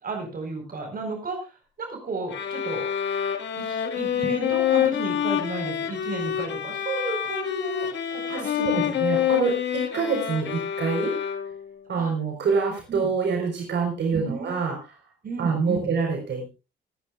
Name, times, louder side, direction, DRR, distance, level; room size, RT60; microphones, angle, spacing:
voice 1, 0.0-1.5 1.8-2.9 3.6-9.0 11.9-12.1 12.9-13.1 14.1-14.5 15.2-15.9, right 3 dB, 45° right, 3 dB, 4.7 m, -33 dB
sound 1, 2.3-11.7, left 9 dB, 65° left, 2.0 m, -27 dB
voice 2, 8.3-11.2 11.9-14.8 15.4-16.5, right 5 dB, 60° right, 1 dB, 4.2 m, -26 dB
23.5 x 9.8 x 2.4 m, 0.29 s
cardioid pair, 90°, 20 cm